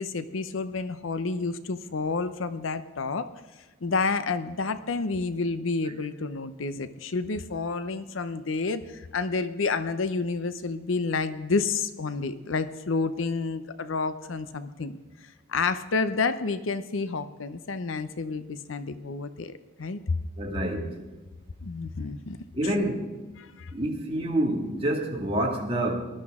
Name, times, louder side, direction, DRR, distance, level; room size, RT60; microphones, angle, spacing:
voice 1, 0.0-3.3 3.8-15.0 15.5-19.5 19.8-20.2 21.6-22.4 22.6-22.9 23.4-23.7, left 4 dB, 85° left, 12 dB, 0.7 m, -29 dB
voice 2, 20.4-20.9 22.5-23.1 23.7-25.9, right 1 dB, 30° right, -1 dB, 2.0 m, -27 dB
19.0 x 12.5 x 3.6 m, 1.2 s
head